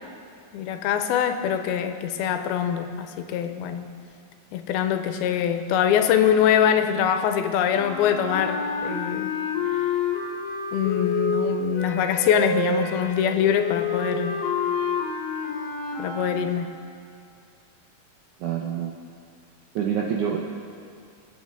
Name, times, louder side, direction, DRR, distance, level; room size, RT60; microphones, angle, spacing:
voice 1, 0.5-3.8 4.5-9.3 10.7-14.4 16.0-16.7, left 9 dB, 85° left, 8 dB, 2.5 m, -23 dB
sound 1, 7.7-16.4, left 4 dB, 60° left, 2.0 m, -28 dB
voice 2, 18.4-18.9 19.8-20.4, right 8 dB, 75° right, -1 dB, 1.8 m, -26 dB
23.0 x 8.8 x 3.6 m, 2.3 s
omnidirectional pair, 4.4 m